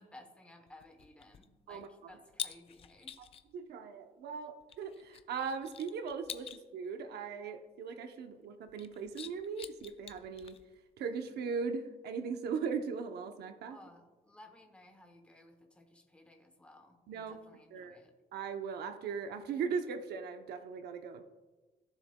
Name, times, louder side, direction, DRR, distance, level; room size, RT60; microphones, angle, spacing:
voice 1, 0.0-3.1 13.7-18.1, left 1 dB, 5° left, 5 dB, 0.9 m, -57 dB
sound 1, 0.7-3.5 4.6-6.6 8.7-10.8, left 8 dB, 35° left, 0.4 m, -47 dB
voice 2, 1.7-2.1 3.2-3.3 3.5-10.6 11.0-13.8 17.1-17.4 17.7-18.0 18.3-21.2, right 5 dB, 80° right, 7 dB, 0.7 m, -39 dB
15.5 x 7.1 x 2.2 m, 1.2 s
cardioid pair, 175°, 17 cm